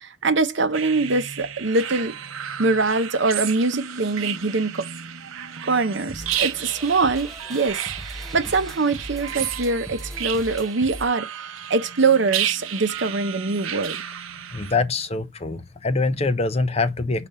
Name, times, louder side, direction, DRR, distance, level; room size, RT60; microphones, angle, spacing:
voice 1, 0.0-2.1 2.6-4.9 5.6-14.0, right 3 dB, 60° right, 0.8 m, -23 dB
sound 1, 0.7-14.8, right 10 dB, 85° right, 0.6 m, -32 dB
sound 2, 6.1-11.1, equal, ahead, 0.8 m, -39 dB
voice 2, 14.5-17.3, left 3 dB, 30° left, 0.5 m, -24 dB
5.2 x 4.2 x 5.5 m
head